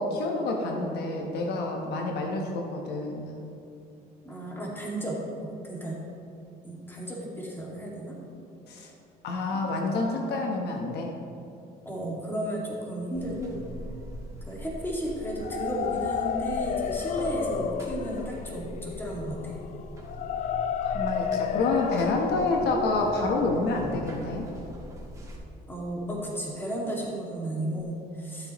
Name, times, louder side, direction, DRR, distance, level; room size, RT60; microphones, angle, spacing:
voice 1, 0.0-3.3 8.7-8.9 9.2-11.1 20.8-24.5, left 2 dB, 75° left, 2 dB, 1.1 m, -28 dB
voice 2, 4.2-6.0 6.6-8.2 9.5-9.6 11.8-13.6 14.5-19.6 25.7-28.5, right 1 dB, 15° left, -3 dB, 2.2 m, -33 dB
Buzz, 13.1-25.4, right 1 dB, 20° right, 1.7 m, -42 dB
sound 1, 15.2-25.1, left 8 dB, 45° left, 0.4 m, -33 dB
13.0 x 7.7 x 3.1 m, 2.7 s
cardioid pair, 110°, 17 cm